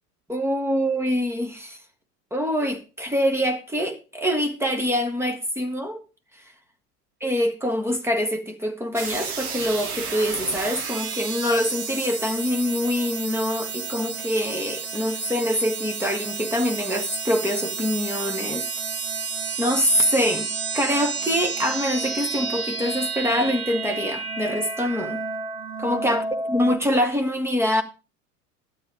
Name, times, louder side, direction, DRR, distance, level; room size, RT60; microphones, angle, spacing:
voice 1, 0.3-1.8 2.3-6.0 7.2-18.7 19.6-20.5 20.7-25.2 25.8-27.8, equal, 5° right, 1.5 m, -25 dB
sound 1, 8.9-26.8, right 4 dB, 65° right, 2.1 m, -31 dB
12.0 x 8.9 x 4.9 m
figure-of-eight pair, 80°, 48 cm